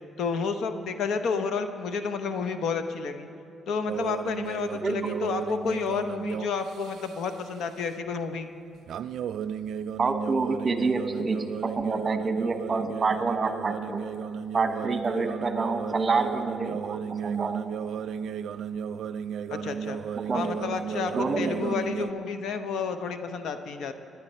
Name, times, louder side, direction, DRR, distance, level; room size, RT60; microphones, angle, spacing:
voice 1, 0.2-3.3 3.7-8.5 19.5-20.0 20.3-23.9, left 5 dB, 75° left, 8 dB, 0.8 m, -30 dB
sound 1, 3.9-7.4 8.9-22.1, right 8 dB, 70° right, 0.3 m, -34 dB
voice 2, 10.0-14.0 14.5-17.6 20.2-20.5 21.1-21.8, right 4 dB, 35° right, 7 dB, 1.1 m, -28 dB
19.0 x 10.5 x 4.3 m, 2.6 s
cardioid pair, 90°, 0 cm